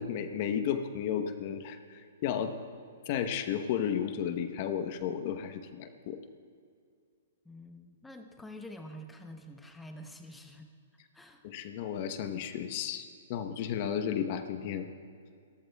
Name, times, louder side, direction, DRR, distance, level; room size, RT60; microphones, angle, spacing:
voice 1, 0.0-2.5 3.1-6.2 11.4-14.9, left 8 dB, 50° left, 8 dB, 1.0 m, -33 dB
voice 2, 7.4-10.7 11.1-11.4, left 1 dB, 5° left, 5 dB, 1.0 m, -47 dB
30.0 x 14.5 x 2.3 m, 2.2 s
hypercardioid pair, 130°, 0 cm